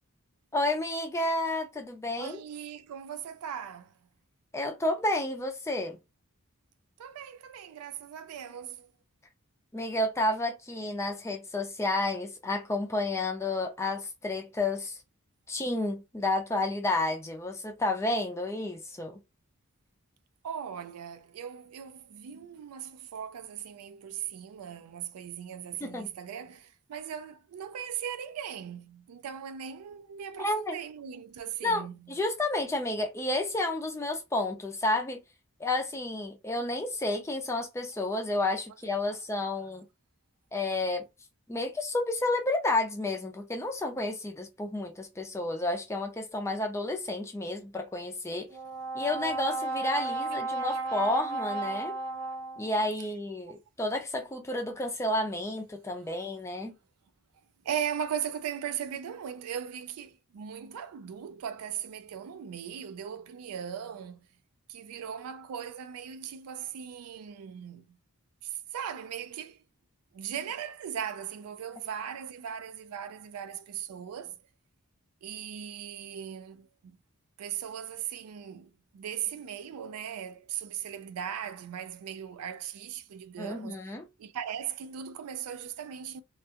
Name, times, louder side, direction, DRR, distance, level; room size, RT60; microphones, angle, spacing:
voice 1, 0.5-2.4 4.5-6.0 9.7-15.0 15.5-19.2 25.8-26.1 30.4-30.8 31.6-35.2 35.6-39.8 40.5-41.0 41.5-48.5 48.9-51.9 52.6-56.8 83.4-84.1, left 2 dB, 10° left, 0.4 m, -31 dB
voice 2, 2.1-3.9 7.0-8.9 20.4-32.1 50.6-50.8 53.5-53.6 57.6-64.3 64.7-68.0 68.4-69.6 70.1-74.4 75.2-77.0 77.4-83.8 84.2-86.2, right 8 dB, 80° right, 0.4 m, -38 dB
Brass instrument, 48.5-52.9, right 2 dB, 65° right, 0.8 m, -33 dB
2.3 x 2.2 x 2.8 m
head